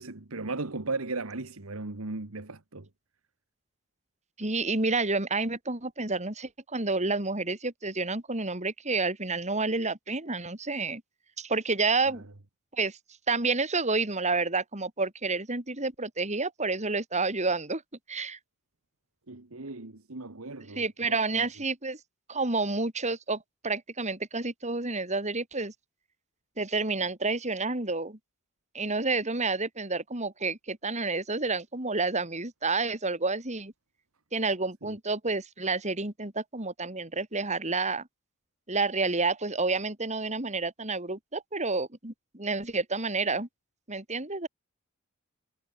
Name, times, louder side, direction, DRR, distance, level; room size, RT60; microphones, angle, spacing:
voice 1, 0.0-2.9 12.1-12.2 19.3-21.5 34.9-35.0, right 3 dB, 70° right, 1.6 m, -37 dB
voice 2, 4.4-11.0 11.4-12.3 12.7-13.0 13.3-17.8 18.1-18.4 20.8-22.0 22.3-25.7 26.6-28.2 28.7-33.7 34.3-38.1 38.7-43.5 43.9-44.5, right 3 dB, 30° right, 4.3 m, -29 dB
head